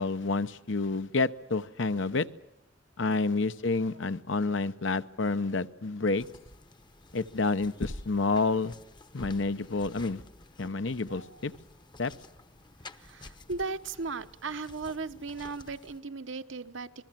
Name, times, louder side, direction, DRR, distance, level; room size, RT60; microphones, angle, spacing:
voice 1, 0.0-2.3 3.0-6.3 7.1-8.7 9.1-10.2 10.6-11.5 12.0-12.1, left 3 dB, 70° left, 12 dB, 0.9 m, -29 dB
sound 1, 6.1-16.0, left 1 dB, 25° left, 0.9 m, -48 dB
voice 2, 11.1-11.4 12.9-17.1, right 4 dB, 75° right, 9 dB, 1.2 m, -37 dB
28.0 x 21.0 x 7.6 m, 0.85 s
head